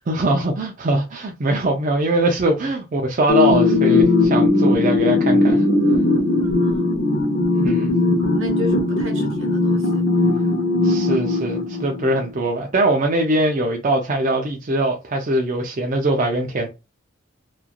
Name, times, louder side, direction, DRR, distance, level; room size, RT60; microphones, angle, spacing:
voice 1, 0.1-5.6 7.5-7.9 10.8-16.7, right 2 dB, 40° right, 0.4 m, -21 dB
sound 1, 3.3-12.3, left 2 dB, 50° left, 0.7 m, -18 dB
voice 2, 6.4-7.0 8.2-10.0, left 2 dB, 70° right, 1.2 m, -33 dB
3.0 x 2.4 x 2.3 m
head